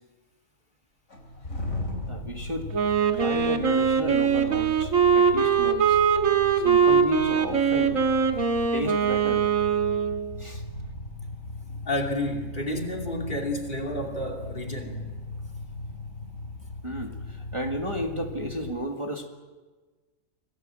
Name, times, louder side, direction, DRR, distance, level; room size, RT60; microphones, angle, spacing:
sound 1, 1.1-18.7, left 2 dB, 90° left, 4.4 m, -38 dB
voice 1, 2.1-2.7 3.1-6.0 6.6-8.0 8.7-9.5 10.4-10.6 16.8-19.3, right 1 dB, 20° right, 1 dB, 1.9 m, -32 dB
Wind instrument woodwind instrument, 2.7-10.4, right 6 dB, 90° right, 2.0 m, -22 dB
voice 2, 11.7-15.1, left 1 dB, 40° left, 5 dB, 3.1 m, -31 dB
26.0 x 18.5 x 7.7 m, 1.3 s
omnidirectional pair, 1.4 m